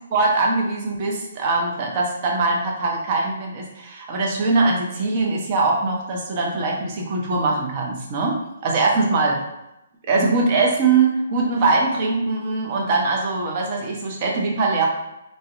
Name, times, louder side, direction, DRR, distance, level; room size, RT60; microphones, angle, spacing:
voice 1, 0.1-8.4 8.6-9.4 10.1-14.9, right 3 dB, 40° right, -1 dB, 0.6 m, -22 dB
2.6 x 2.1 x 2.4 m, 0.88 s
figure-of-eight pair, 135°, 0 cm